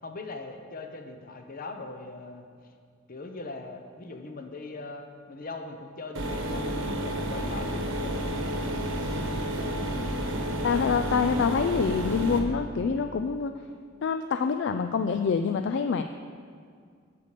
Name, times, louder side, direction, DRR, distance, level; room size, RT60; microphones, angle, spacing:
voice 1, 0.0-2.4 3.1-8.3, left 3 dB, 45° left, 5 dB, 0.9 m, -40 dB
sound 1, 6.2-12.4, equal, 80° right, 1.2 m, -30 dB
voice 2, 10.6-13.5 14.0-16.0, left 5 dB, 60° left, 7 dB, 0.3 m, -26 dB
8.5 x 6.7 x 6.6 m, 2.1 s
head